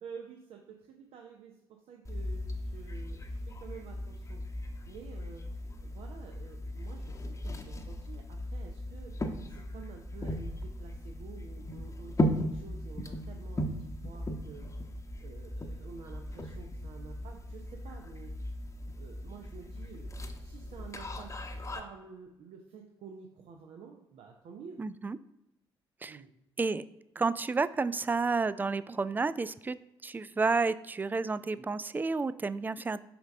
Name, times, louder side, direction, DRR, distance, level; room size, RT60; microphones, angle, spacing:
voice 1, 0.0-4.4 4.9-5.4 5.8-14.8 15.2-18.5 19.0-20.1 20.4-21.3 21.8-24.8 26.1-26.3, right 6 dB, 55° right, 1 dB, 0.7 m, -50 dB
sound 1, 2.0-21.8, left 1 dB, 25° left, 0.9 m, -37 dB
voice 2, 24.8-25.2 26.0-26.2 26.6-26.8 27.2-29.8 30.0-33.0, right 4 dB, 15° right, 16 dB, 0.3 m, -30 dB
5.9 x 5.2 x 3.6 m, 0.90 s
figure-of-eight pair, 40°, 12 cm